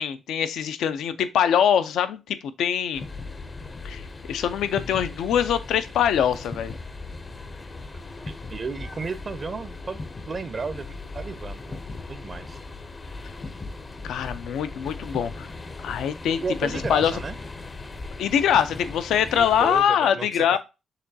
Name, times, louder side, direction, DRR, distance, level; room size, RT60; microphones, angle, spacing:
voice 1, 0.0-3.0 3.8-4.0 4.3-6.7 14.0-15.5 15.8-16.4 16.9-17.1 18.2-20.6, left 9 dB, 85° left, 0.4 m, -23 dB
sound 1, 2.9-19.8, left 3 dB, 30° left, 0.5 m, -38 dB
voice 2, 8.5-10.0 10.3-12.6 16.4-17.4 19.4-20.6, right 4 dB, 35° right, 0.4 m, -33 dB
6.7 x 3.0 x 2.6 m
cardioid pair, 110°, 0 cm